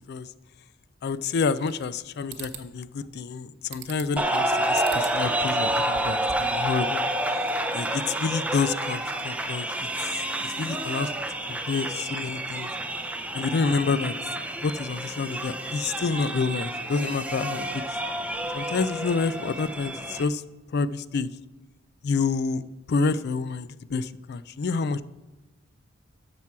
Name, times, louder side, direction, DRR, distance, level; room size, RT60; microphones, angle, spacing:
voice 1, 1.0-7.0 7.7-9.7 10.0-10.1 10.4-11.1 11.5-12.7 13.3-14.1 14.6-18.0 18.5-20.4 20.7-21.3 22.0-22.6 22.9-25.0, left 4 dB, 55° left, 16 dB, 0.4 m, -28 dB
sound 1, 1.3-2.0 2.3-2.7 3.7-4.2 4.7-5.2 5.6-6.6, right 7 dB, 60° right, 0.9 m, -42 dB
sound 2, 4.2-20.2, right 1 dB, 5° right, 0.6 m, -29 dB
13.0 x 6.0 x 4.7 m, 1.1 s
head